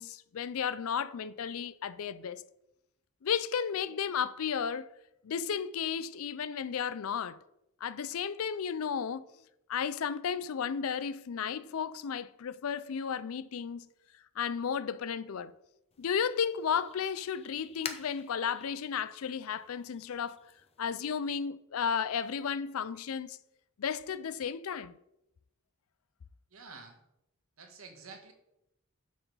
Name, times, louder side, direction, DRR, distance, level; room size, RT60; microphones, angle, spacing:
voice 1, 0.0-2.4 3.2-4.9 5.2-7.4 7.8-9.2 9.7-13.9 14.4-15.5 16.0-20.4 20.8-23.4 23.8-24.9, left 7 dB, 80° left, 0.4 m, -33 dB
sound 1, 15.9-21.1, left 6 dB, 30° left, 0.7 m, -48 dB
voice 2, 26.5-27.0 27.6-28.3, right 4 dB, 70° right, 1.5 m, -49 dB
9.2 x 6.8 x 4.0 m
head